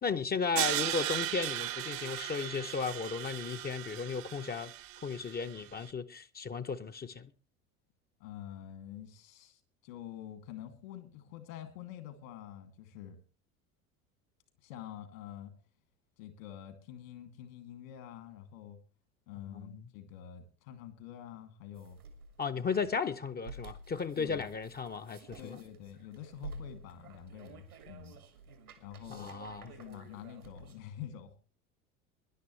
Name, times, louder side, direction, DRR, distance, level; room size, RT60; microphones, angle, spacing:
voice 1, 0.0-4.7 5.0-7.3 19.5-19.9 22.4-25.5 29.1-29.7, left 5 dB, 20° left, 0.8 m, -35 dB
Crash cymbal, 0.6-5.6, right 14 dB, 50° right, 1.0 m, -37 dB
voice 2, 8.2-13.2 14.6-15.5 16.2-18.8 19.3-22.0 24.2-24.5 25.4-28.2 28.8-29.3 29.6-31.4, left 10 dB, 65° left, 2.6 m, -47 dB
sound 1, 21.7-30.8, right 3 dB, 85° right, 2.4 m, -51 dB
22.0 x 11.0 x 3.2 m
figure-of-eight pair, 70°, 43 cm